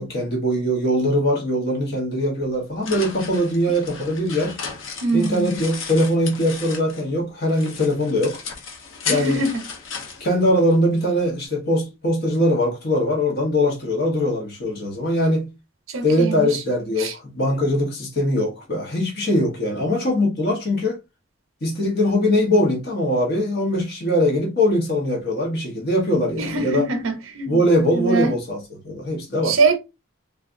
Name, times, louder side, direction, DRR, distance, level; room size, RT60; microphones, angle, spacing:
voice 1, 0.0-4.6 5.1-8.4 9.1-9.4 10.2-15.5 16.0-21.0 21.6-26.9 27.5-29.6, left 1 dB, 50° left, 1.0 m, -21 dB
sound 1, 2.4-7.1 7.5-11.0, left 5 dB, 75° left, 0.7 m, -34 dB
voice 2, 5.0-5.6 9.1-9.6 15.9-16.6 17.0-17.1 26.4-27.6 27.9-28.3 29.4-29.8, right 3 dB, 85° right, 0.6 m, -23 dB
3.4 x 2.5 x 2.4 m
head